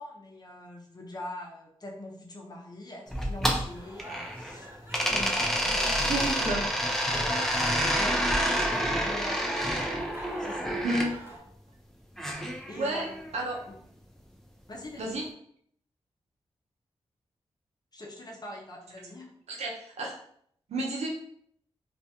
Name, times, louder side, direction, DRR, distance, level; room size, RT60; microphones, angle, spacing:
voice 1, 0.0-6.3 7.1-8.4 9.1-9.4 10.4-11.1 12.7-13.2 14.7-15.2 17.9-19.4, left 1 dB, 40° left, -1 dB, 0.7 m, -42 dB
sound 1, 3.1-4.5 4.9-11.1 12.2-13.3, equal, 5° left, 0.5 m, -28 dB
sound 2, 3.7-11.4, right 1 dB, 20° right, 1.0 m, -42 dB
voice 2, 6.1-6.6 10.8-11.1 12.8-13.0 13.3-13.6 15.0-15.3 19.5-20.2 20.7-21.1, right 2 dB, 85° right, -1 dB, 0.6 m, -30 dB
2.4 x 2.1 x 2.8 m, 0.66 s
cardioid pair, 45°, 11 cm